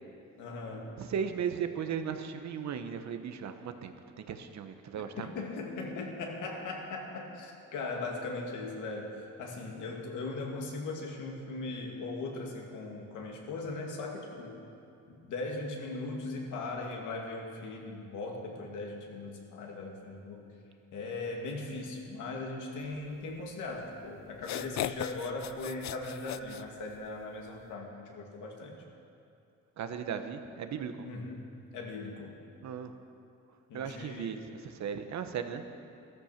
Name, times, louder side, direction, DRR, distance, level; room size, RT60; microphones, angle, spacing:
voice 1, 0.4-1.0 5.2-14.6 15.1-20.5 20.9-28.8 31.0-31.5 31.7-32.4 33.7-34.4, left 3 dB, 80° left, 0 dB, 2.4 m, -39 dB
voice 2, 1.0-5.3 29.8-30.9 32.6-32.9 33.7-35.6, right 7 dB, 65° right, 8 dB, 1.1 m, -36 dB
sound 1, 23.8-23.9 24.3-27.2, left 12 dB, 65° left, 0.5 m, -38 dB
13.5 x 13.5 x 5.9 m, 2.5 s
cardioid pair, 90°, 30 cm